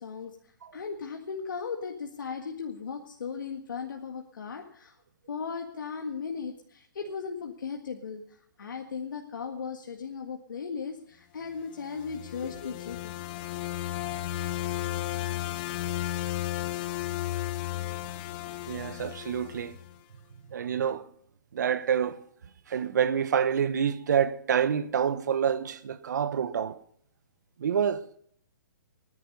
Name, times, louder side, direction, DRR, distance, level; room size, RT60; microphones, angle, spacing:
voice 1, 0.0-5.0 5.3-13.1, left 5 dB, 80° left, 1.8 m, -37 dB
sound 1, 11.8-19.9, left 14 dB, 30° left, 0.7 m, -34 dB
voice 2, 18.7-19.7 20.5-21.0 21.5-22.2 22.7-26.8 27.6-28.0, right 8 dB, 65° right, 1.2 m, -27 dB
19.5 x 10.0 x 5.4 m
hypercardioid pair, 160°, 10 cm